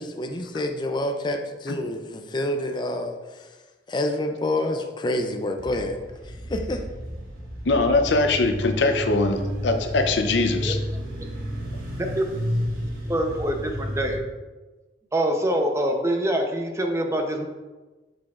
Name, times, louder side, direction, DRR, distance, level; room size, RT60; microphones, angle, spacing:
voice 1, 0.0-3.2 3.9-6.0 6.5-6.8, left 1 dB, 25° left, 5 dB, 0.4 m, -27 dB
sound 1, 5.6-14.2, equal, 55° right, 1.4 m, -31 dB
voice 2, 7.7-10.8, left 3 dB, 85° left, 6 dB, 0.6 m, -22 dB
voice 3, 13.0-14.2 15.1-17.5, right 1 dB, 15° right, 3 dB, 0.6 m, -25 dB
6.7 x 6.1 x 2.4 m, 1.2 s
head